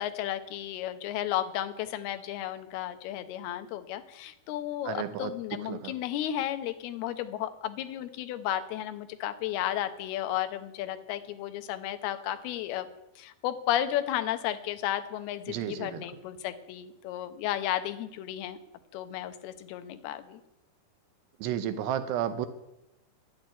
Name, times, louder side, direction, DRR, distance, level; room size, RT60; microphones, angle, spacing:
voice 1, 0.0-12.9 13.2-18.6 18.9-20.4, left 12 dB, 75° left, 9 dB, 2.7 m, -33 dB
voice 2, 4.9-5.3 5.7-5.9 15.5-16.1 21.4-22.5, right 10 dB, 80° right, 10 dB, 2.8 m, -32 dB
11.0 x 9.0 x 9.4 m, 0.87 s
omnidirectional pair, 5.1 m